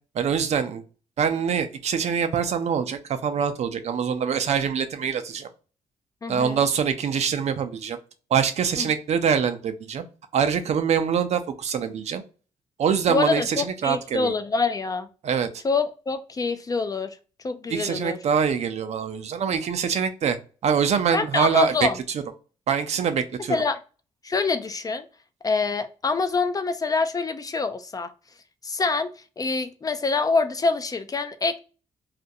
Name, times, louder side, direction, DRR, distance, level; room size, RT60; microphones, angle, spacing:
voice 1, 0.2-0.8 1.2-5.5 6.3-8.0 8.3-10.0 10.3-12.2 12.8-14.3 15.2-15.5 17.7-20.4 20.6-21.7 22.7-23.6, right 7 dB, 60° right, 9 dB, 0.4 m, -24 dB
voice 2, 6.2-6.6 8.8-8.9 13.1-15.1 15.6-17.2 17.4-18.2 21.1-22.0 23.5-23.8 24.2-25.1 25.4-28.1 28.6-31.6, left 4 dB, 30° left, 10 dB, 0.3 m, -25 dB
2.4 x 2.1 x 2.6 m, 0.36 s
cardioid pair, 85°, 13 cm